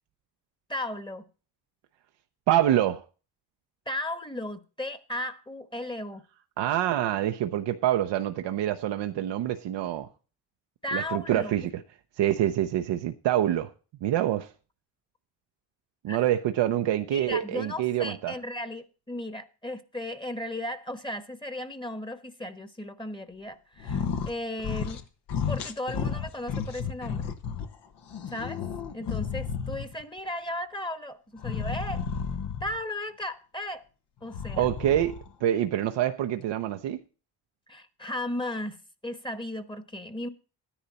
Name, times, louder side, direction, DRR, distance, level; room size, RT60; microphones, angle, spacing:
voice 1, 0.7-1.3 3.9-6.2 10.8-11.5 16.1-16.2 17.1-25.0 25.5-27.3 28.3-28.6 28.9-32.1 32.6-33.8 34.2-34.7 37.7-40.3, left 1 dB, 10° left, 1.2 m, -35 dB
voice 2, 2.5-3.0 6.6-10.1 10.9-11.6 12.2-13.7 14.0-14.5 16.0-18.3 34.6-37.0, right 12 dB, 80° right, 0.8 m, -26 dB
sound 1, 23.8-24.3 24.6-25.0 25.3-27.7 28.1-30.0 31.4-32.8 34.2-35.3, left 7 dB, 80° left, 1.3 m, -32 dB
12.5 x 10.0 x 4.1 m
supercardioid pair, 60°, 42 cm